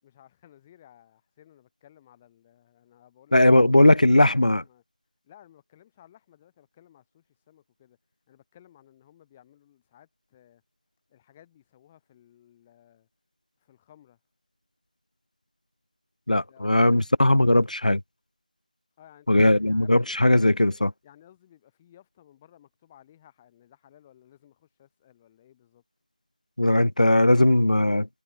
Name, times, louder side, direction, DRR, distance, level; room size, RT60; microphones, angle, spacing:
voice 1, 0.0-4.2 4.5-4.8 5.2-8.0 8.3-10.6 11.1-13.1 13.6-14.2 16.3-17.1 19.0-20.8 21.0-25.8, left 11 dB, 5° left, 3.5 m, -57 dB
voice 2, 3.3-4.6 16.3-18.0 19.3-20.9 26.6-28.1, left 1 dB, 70° left, 2.4 m, -19 dB
figure-of-eight pair, 180°, 4 cm